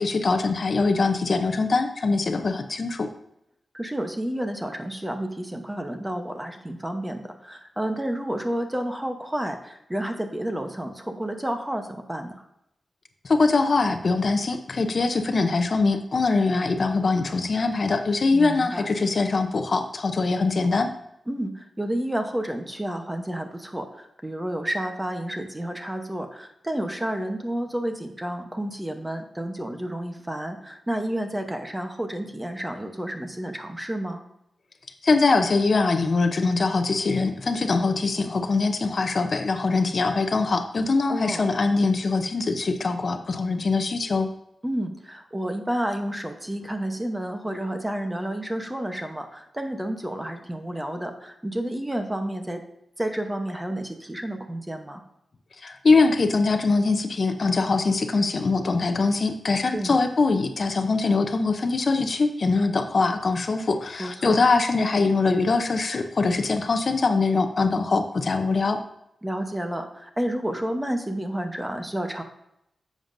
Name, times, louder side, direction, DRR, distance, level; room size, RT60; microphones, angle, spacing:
voice 1, 0.0-3.1 13.2-20.9 35.0-44.3 55.6-68.8, left 3 dB, 45° left, 7 dB, 0.6 m, -23 dB
voice 2, 3.7-12.3 18.3-18.9 21.3-34.2 41.1-41.5 44.6-52.6 53.0-55.0 59.6-60.0 64.0-64.4 69.2-72.2, right 1 dB, 10° right, 5 dB, 0.9 m, -30 dB
10.5 x 7.3 x 2.6 m, 0.80 s
wide cardioid pair, 130°, 0 cm